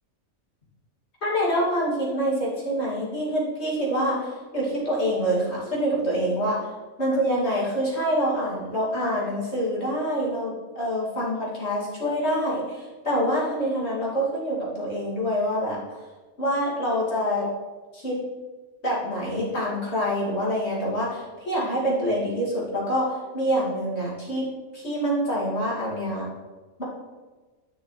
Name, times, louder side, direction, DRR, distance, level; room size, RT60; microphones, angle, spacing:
voice 1, 1.2-6.6 7.0-16.0 16.4-17.5 17.9-18.2 18.8-24.5 24.7-26.3, equal, 55° left, -7 dB, 2.7 m, -26 dB
10.5 x 5.8 x 3.2 m, 1.3 s
omnidirectional pair, 1.4 m